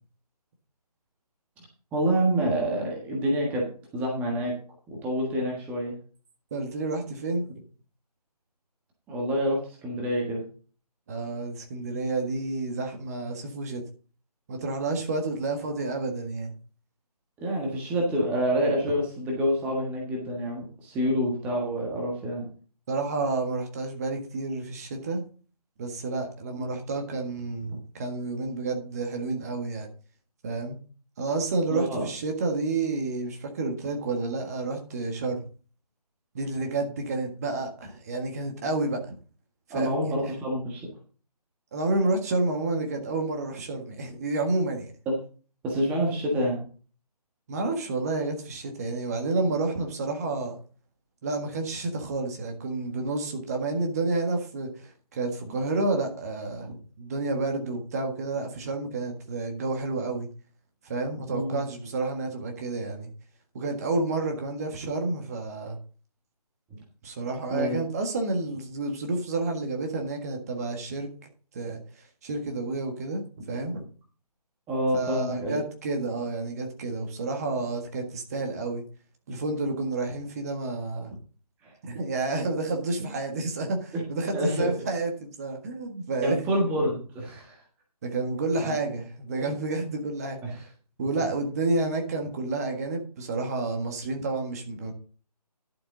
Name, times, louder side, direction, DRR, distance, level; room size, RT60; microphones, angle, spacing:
voice 1, 1.9-3.7 3.9-4.5 4.9-5.9 9.1-10.4 17.4-22.5 31.7-32.1 39.7-40.9 45.0-45.2 45.6-46.6 61.3-61.6 66.7-66.8 67.5-67.8 74.7-75.6 81.6-81.7 83.9-84.0 84.3-84.7 85.9-87.6 88.6-88.7, equal, 5° right, -2 dB, 1.4 m, -27 dB
voice 2, 6.5-7.5 11.1-13.8 14.5-16.5 22.9-25.2 25.8-29.9 30.4-30.8 31.2-35.4 36.3-39.1 39.7-39.9 41.7-44.9 47.5-50.6 51.2-60.3 60.8-63.1 63.5-65.8 67.0-71.1 71.5-73.9 74.9-78.8 79.3-81.2 81.8-86.4 88.0-90.7 91.0-94.9, right 3 dB, 25° right, 3 dB, 1.6 m, -30 dB
11.5 x 7.6 x 3.8 m, 0.39 s
figure-of-eight pair, 155°, 21 cm